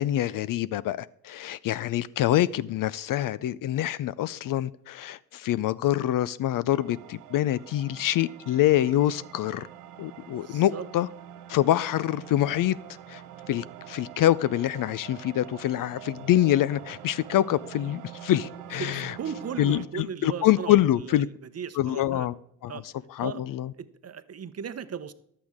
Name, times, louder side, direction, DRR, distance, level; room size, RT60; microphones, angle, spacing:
voice 1, 0.0-9.7 10.0-11.1 11.5-12.8 13.1-13.2 13.5-19.1 19.6-21.3 21.8-22.3 22.6-22.7 23.1-23.7, left 13 dB, 50° left, 19 dB, 0.5 m, -25 dB
sound 1, 6.7-19.8, right 11 dB, 90° right, 0.8 m, -45 dB
voice 2, 10.1-10.9 18.8-22.3 22.7-22.9 23.2-23.4 24.0-25.1, right 7 dB, 35° right, 13 dB, 0.8 m, -37 dB
11.5 x 8.5 x 3.6 m, 0.69 s
hypercardioid pair, 55°, 43 cm